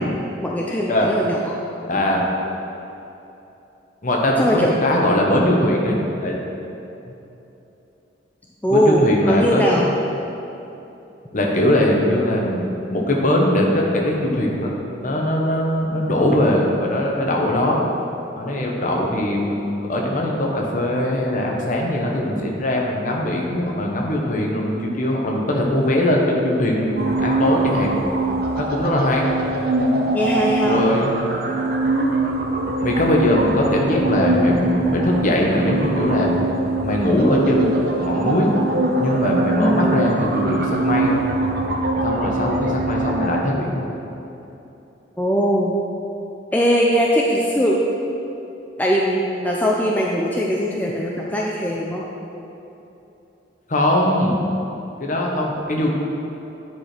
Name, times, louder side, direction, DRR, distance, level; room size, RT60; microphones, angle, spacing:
voice 1, 0.4-1.5 4.4-4.7 5.4-5.7 8.6-9.9 30.1-30.8 39.6-40.1 45.2-45.7 46.5-47.8 48.8-52.0, equal, 10° left, -3 dB, 0.5 m, -20 dB
voice 2, 1.9-2.2 4.0-6.4 7.1-7.2 8.7-9.8 11.3-12.6 12.9-14.7 15.0-17.8 18.3-27.9 28.6-29.2 30.6-31.3 32.8-36.4 36.8-38.5 39.0-41.1 42.0-43.8 53.7-54.4 55.0-55.9, left 1 dB, 45° left, -1 dB, 1.1 m, -21 dB
sound 1, 27.0-43.4, right 2 dB, 55° right, 0.8 m, -22 dB
9.6 x 4.9 x 4.4 m, 2.9 s
head